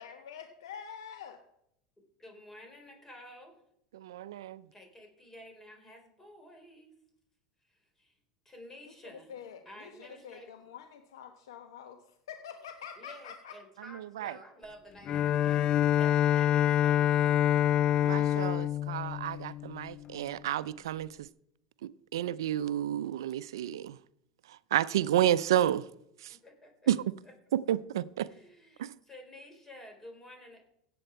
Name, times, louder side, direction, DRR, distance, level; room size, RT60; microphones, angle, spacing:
voice 1, 0.0-1.4 9.3-12.0 12.3-13.5, left 8 dB, 85° left, 1.1 m, -46 dB
voice 2, 2.0-3.6 4.7-6.9 7.6-8.2 8.4-9.3 9.7-10.7 13.0-15.6 15.9-17.4 26.3-26.9 27.2-27.3 28.3-30.6, left 1 dB, 15° left, 4.1 m, -51 dB
voice 3, 3.9-4.6 14.2-14.3 18.0-21.3 22.1-24.0 24.7-25.8 26.2-26.4 26.9-27.0 27.7-28.3 28.8-28.9, right 12 dB, 85° right, 0.5 m, -30 dB
Bowed string instrument, 15.1-20.1, left 11 dB, 40° left, 0.3 m, -26 dB
16.5 x 7.8 x 4.6 m
hypercardioid pair, 100°, 2 cm